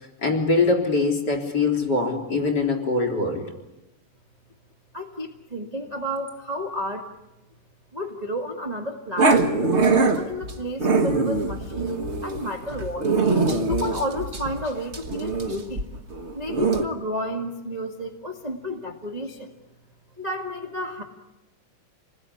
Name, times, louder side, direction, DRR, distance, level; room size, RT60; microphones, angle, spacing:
voice 1, 0.2-3.5, left 3 dB, 35° left, 3 dB, 4.0 m, -23 dB
voice 2, 4.9-7.1 7.9-13.1 13.7-15.8 16.3-19.5 20.2-21.0, equal, 20° right, 1 dB, 1.1 m, -31 dB
Growling, 9.2-16.8, right 3 dB, 55° right, 0.7 m, -23 dB
28.0 x 20.5 x 9.9 m, 0.99 s
omnidirectional pair, 3.5 m